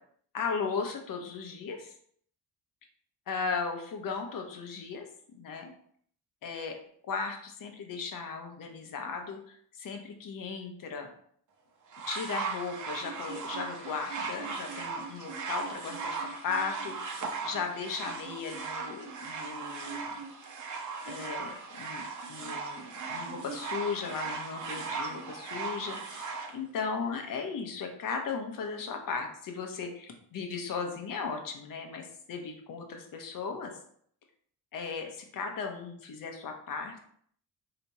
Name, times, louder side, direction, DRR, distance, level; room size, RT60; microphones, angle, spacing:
voice 1, 0.3-1.9 3.3-5.0 5.4-5.7 6.4-6.7 7.1-11.1 12.1-20.2 21.1-22.0 22.3-33.7 34.7-37.0, left 5 dB, 60° left, 4 dB, 0.9 m, -36 dB
sound 1, 11.9-26.5 27.4-27.5, right 4 dB, 50° right, 0.9 m, -38 dB
3.3 x 2.9 x 4.1 m, 0.62 s
cardioid pair, 85°, 37 cm